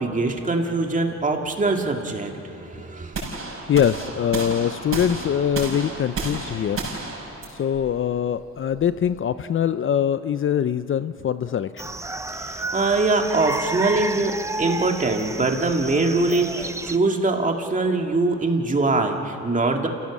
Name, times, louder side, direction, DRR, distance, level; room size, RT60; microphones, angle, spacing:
voice 1, 0.0-3.1 12.3-19.9, right 3 dB, 25° right, 3 dB, 2.3 m, -23 dB
sound 1, 3.1-9.2, right 3 dB, 50° right, 6.6 m, -32 dB
voice 2, 3.7-6.9 7.5-11.9, left 9 dB, 45° left, 13 dB, 0.6 m, -23 dB
sound 2, 11.8-17.0, right 2 dB, 10° right, 0.8 m, -31 dB
29.0 x 16.5 x 7.3 m, 2.9 s
cardioid pair, 90°, 30 cm